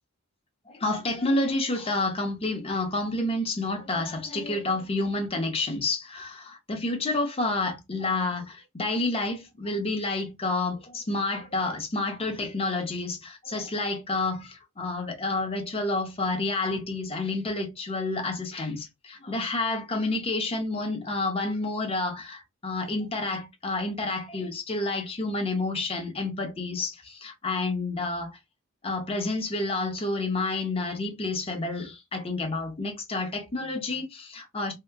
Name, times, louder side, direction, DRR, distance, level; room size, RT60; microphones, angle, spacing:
voice 1, 0.7-28.4 28.8-34.7, left 2 dB, 30° left, 0.8 m, -29 dB
2.8 x 2.1 x 3.4 m
head